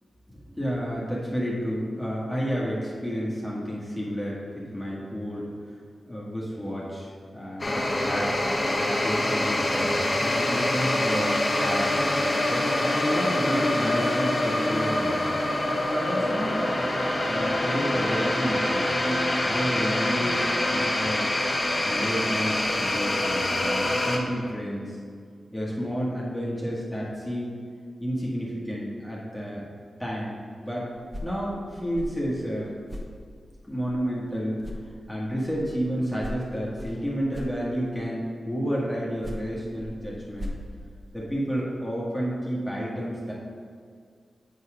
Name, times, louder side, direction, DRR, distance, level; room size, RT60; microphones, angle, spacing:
voice 1, 0.3-5.5 6.0-8.4 8.7-12.0 12.5-15.3 15.7-16.7 17.3-20.4 20.7-21.2 21.8-24.9 25.5-27.6 28.0-29.6 30.0-30.8 31.2-32.7 33.6-34.6 35.1-40.5 41.1-43.3, equal, 5° left, -6 dB, 1.6 m, -30 dB
sound 1, 7.6-24.2, left 1 dB, 40° left, 1.0 m, -25 dB
sound 2, 30.9-34.3 34.6-38.1 39.0-41.6, left 1 dB, 20° right, 1.0 m, -41 dB
7.9 x 4.1 x 5.0 m, 2.1 s
cardioid pair, 60°, 0 cm